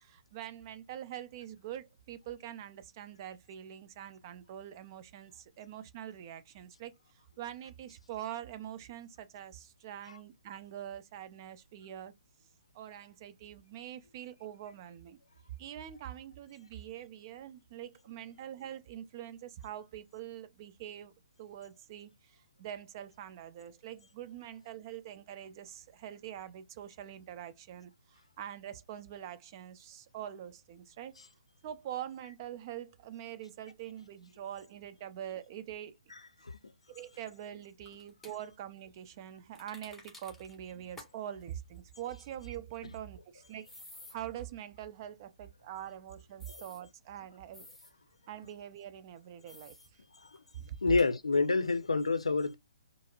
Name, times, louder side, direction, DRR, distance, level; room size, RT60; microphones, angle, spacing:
voice 1, 0.0-6.9 7.4-12.1 12.7-15.2 15.6-21.1 21.4-31.2 31.6-36.0 36.9-43.7 44.1-47.7 48.3-49.8 50.5-51.0, right 11 dB, 35° right, 0.6 m, -44 dB
voice 2, 36.1-36.6 42.8-42.9 46.5-46.6 50.8-52.6, left 3 dB, 80° left, 0.5 m, -29 dB
sound 1, 37.9-38.4 39.6-40.6 41.0-41.1 41.4-41.5 43.6-44.2 46.4-46.8 47.5-47.9 49.5-49.9 50.3-50.4 50.9-51.1, left 2 dB, 5° left, 1.0 m, -52 dB
4.6 x 2.0 x 2.3 m
figure-of-eight pair, 130°, 3 cm